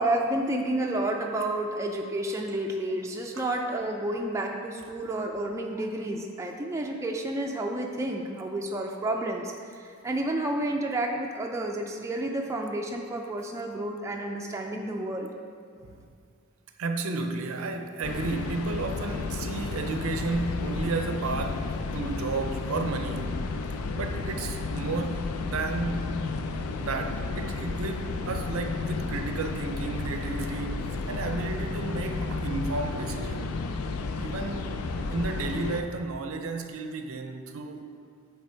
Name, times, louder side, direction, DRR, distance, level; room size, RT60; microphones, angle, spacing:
voice 1, 0.0-15.3, right 1 dB, 15° right, 1 dB, 0.3 m, -30 dB
voice 2, 16.8-23.4 23.9-26.1 26.8-33.6 34.2-34.7 35.1-37.8, right 3 dB, 75° right, 6 dB, 0.5 m, -32 dB
sound 1, 18.0-35.8, left 3 dB, 85° left, 0.4 m, -32 dB
7.7 x 3.3 x 4.4 m, 2.2 s
head